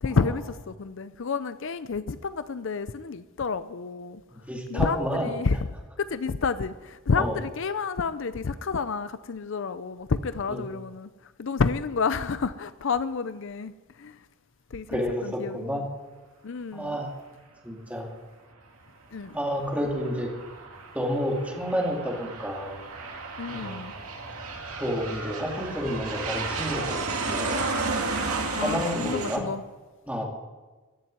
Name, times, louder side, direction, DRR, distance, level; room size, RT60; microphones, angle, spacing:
voice 1, 0.0-4.2 4.7-5.7 6.0-11.1 11.4-14.2 14.7-15.8 16.4-17.0 19.1-19.4 23.4-23.9 28.6-29.6, left 4 dB, 60° left, 13 dB, 0.5 m, -29 dB
voice 2, 4.3-5.3 7.1-7.4 10.5-10.6 14.9-15.9 16.7-17.1 17.6-18.1 19.3-20.3 20.9-22.7 23.5-23.8 24.8-27.6 28.6-29.4 30.1-30.2, equal, 5° right, 0 dB, 2.4 m, -30 dB
Aircraft, 19.2-29.4, right 3 dB, 85° right, 2.2 m, -33 dB
16.0 x 7.5 x 9.7 m, 1.3 s
head